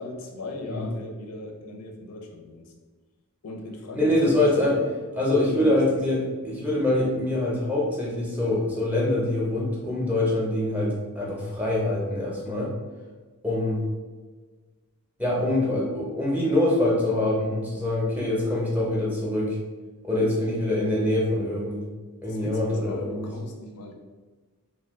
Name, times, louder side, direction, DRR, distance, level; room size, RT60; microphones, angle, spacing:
voice 1, 0.0-2.6 3.4-4.7 5.3-6.0 20.1-20.3 22.3-23.9, left 2 dB, 90° left, 2 dB, 0.5 m, -38 dB
voice 2, 3.9-4.8 5.1-12.7 13.4-13.8 15.2-19.6 20.0-21.8 22.2-23.3, left 1 dB, 5° right, -5 dB, 0.6 m, -24 dB
2.6 x 2.2 x 3.5 m, 1.4 s
head